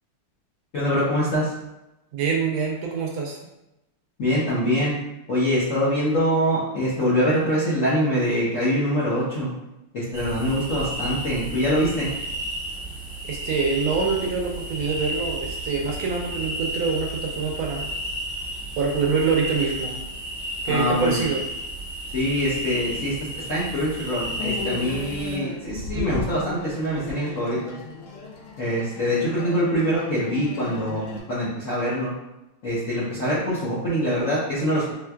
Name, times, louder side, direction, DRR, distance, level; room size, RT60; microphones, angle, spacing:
voice 1, 0.7-1.5 4.2-5.0 5.3-9.5 9.9-12.1 20.7-21.2 22.1-27.7 28.6-32.1 32.6-34.8, equal, 65° left, -9 dB, 0.8 m, -24 dB
voice 2, 2.1-3.4 13.2-17.9 18.8-20.0 20.6-21.5, right 5 dB, 75° right, 0 dB, 1.3 m, -25 dB
sound 1, 10.1-25.4, right 1 dB, 25° right, 0.3 m, -32 dB
sound 2, 24.3-31.2, left 3 dB, 85° left, 1.5 m, -35 dB
4.3 x 2.3 x 2.2 m, 0.94 s
omnidirectional pair, 2.3 m